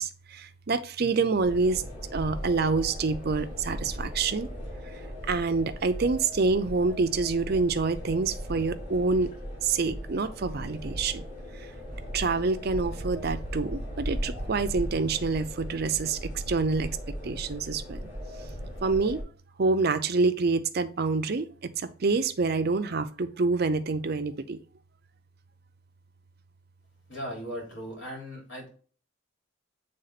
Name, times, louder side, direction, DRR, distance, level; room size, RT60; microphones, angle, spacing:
voice 1, 0.0-1.8 2.1-4.5 5.3-9.3 9.6-11.3 11.5-11.7 12.1-17.0 17.2-18.1 18.8-19.2 19.6-24.6, right 4 dB, 50° right, 10 dB, 0.6 m, -27 dB
sound 1, 1.3-19.2, equal, 35° left, 3.6 m, -38 dB
voice 2, 27.1-28.7, equal, 60° left, -1 dB, 3.7 m, -38 dB
7.8 x 3.6 x 4.1 m, 0.41 s
head